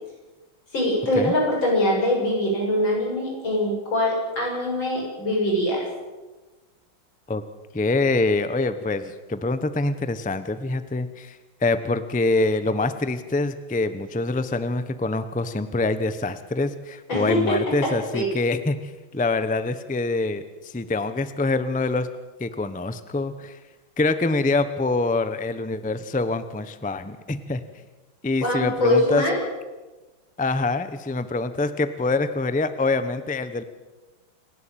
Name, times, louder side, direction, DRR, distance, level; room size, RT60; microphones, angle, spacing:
voice 1, 0.7-5.9 17.1-17.6 17.8-18.3 28.4-29.4, left 1 dB, 70° left, -2 dB, 7.8 m, -23 dB
voice 2, 7.7-22.1 22.4-23.6 24.0-27.6 28.2-29.2 30.4-33.6, left 3 dB, 10° left, 11 dB, 0.5 m, -25 dB
28.0 x 12.0 x 8.8 m, 1.2 s
omnidirectional pair, 2.2 m